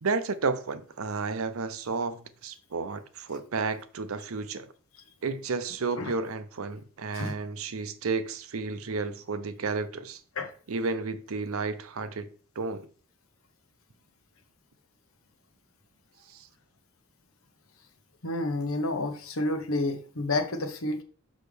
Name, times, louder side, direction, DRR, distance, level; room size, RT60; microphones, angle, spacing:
voice 1, 0.0-4.7 5.2-10.2 10.7-12.3 12.6-12.9 16.3-16.5, right 4 dB, 90° right, 0.7 m, -32 dB
voice 2, 18.2-21.0, left 2 dB, 90° left, 1.1 m, -30 dB
6.3 x 5.6 x 3.4 m
head